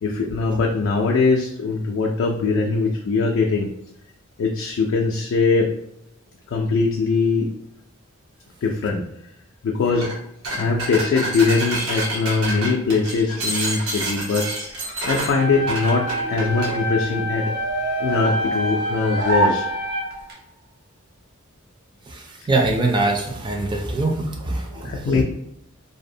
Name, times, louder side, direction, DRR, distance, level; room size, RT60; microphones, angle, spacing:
voice 1, 0.0-3.7 4.4-5.7 6.5-7.5 8.6-9.0 9.6-10.1 10.5-14.5 15.0-17.5 18.0-19.7 24.7-25.2, left 4 dB, 60° left, -1 dB, 0.3 m, -21 dB
sound 1, 9.9-10.1 10.4-16.8, right 2 dB, 90° right, 0.9 m, -28 dB
sound 2, 15.3-20.3, equal, 50° right, 0.7 m, -27 dB
sound 3, 15.4-20.3, right 1 dB, 70° right, 1.3 m, -28 dB
voice 2, 22.5-25.2, right 2 dB, 20° right, 2 dB, 0.4 m, -23 dB
2.7 x 2.0 x 2.6 m, 0.77 s
head